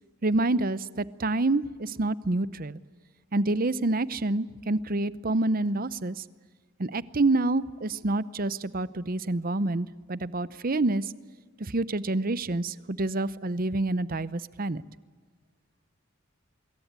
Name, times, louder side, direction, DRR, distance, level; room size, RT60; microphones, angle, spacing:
voice 1, 0.2-2.8 3.3-6.1 6.8-11.1 11.6-14.8, right 2 dB, 45° right, 17 dB, 0.8 m, -27 dB
25.5 x 22.5 x 9.5 m, 1.5 s
head